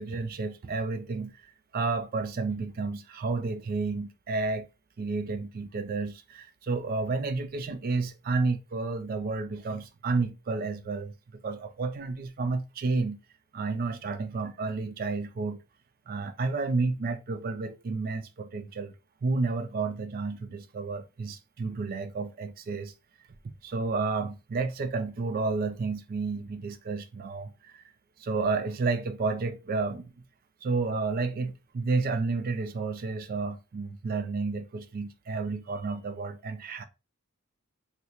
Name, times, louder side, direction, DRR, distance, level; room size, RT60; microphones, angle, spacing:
voice 1, 0.0-4.7 5.0-13.2 13.5-15.6 16.1-18.9 19.2-22.9 23.6-27.8 28.2-30.1 30.6-36.8, right 3 dB, 40° right, 0.3 m, -31 dB
3.7 x 2.1 x 2.9 m
head